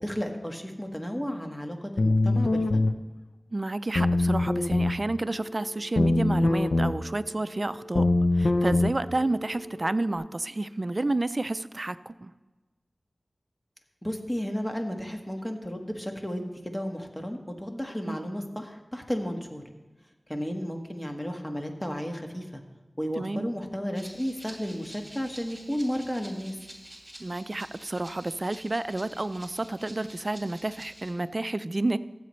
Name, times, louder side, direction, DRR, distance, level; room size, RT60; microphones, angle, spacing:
voice 1, 0.0-2.9 14.0-19.6 20.3-22.6 23.0-26.6, equal, 20° left, 3 dB, 1.5 m, -33 dB
sound 1, 2.0-2.9 3.9-5.0 6.0-6.9 7.9-8.9, left 2 dB, 80° left, 0.6 m, -23 dB
voice 2, 3.5-8.1 8.4-12.3 18.0-18.2 23.2-23.5 27.2-32.0, right 2 dB, 45° right, 14 dB, 0.4 m, -30 dB
Telephone, 5.2-10.2, equal, 55° left, 2.0 m, -45 dB
Rattle (instrument), 23.9-31.1, right 1 dB, 20° right, 3.0 m, -48 dB
15.0 x 7.7 x 3.2 m, 1.2 s
wide cardioid pair, 40°, 0 cm